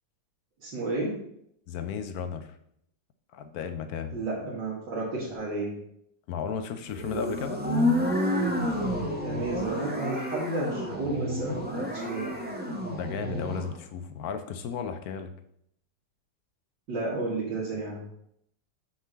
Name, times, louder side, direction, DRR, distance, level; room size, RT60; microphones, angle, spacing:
voice 1, 0.6-1.1 4.1-5.7 9.2-12.3 16.9-18.0, right 2 dB, 85° right, -7 dB, 2.3 m, -32 dB
voice 2, 1.7-2.5 3.3-4.2 6.3-7.6 12.9-15.3, left 7 dB, 70° left, 9 dB, 0.9 m, -34 dB
sound 1, 6.9-13.7, left 1 dB, 10° right, 0.7 m, -29 dB
6.2 x 3.9 x 6.2 m, 0.73 s
omnidirectional pair, 1.9 m